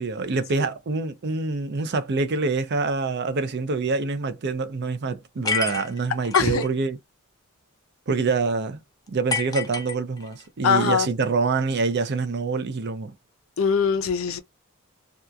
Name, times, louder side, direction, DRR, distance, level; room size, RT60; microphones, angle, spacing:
voice 1, 0.0-7.0 8.1-8.8 9.1-13.1, right 4 dB, 50° right, 0.5 m, -26 dB
sound 1, 5.4-6.7 9.3-10.5, left 5 dB, 15° left, 0.5 m, -29 dB
voice 2, 6.3-6.6 10.6-11.1 13.6-14.4, left 6 dB, 75° left, 0.6 m, -21 dB
2.8 x 2.4 x 2.3 m
head